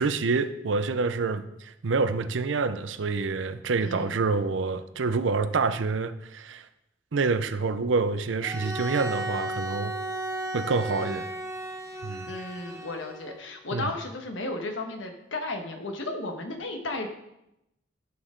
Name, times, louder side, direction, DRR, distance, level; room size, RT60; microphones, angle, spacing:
voice 1, 0.0-6.7 7.1-9.9 10.5-11.3 12.0-12.3 13.7-13.9, right 4 dB, 75° right, 12 dB, 0.6 m, -27 dB
voice 2, 3.8-4.1 12.3-17.1, left 2 dB, 75° left, 4 dB, 1.3 m, -34 dB
Bowed string instrument, 8.4-13.4, right 1 dB, 15° right, 0.9 m, -35 dB
11.5 x 6.5 x 3.8 m, 0.86 s
head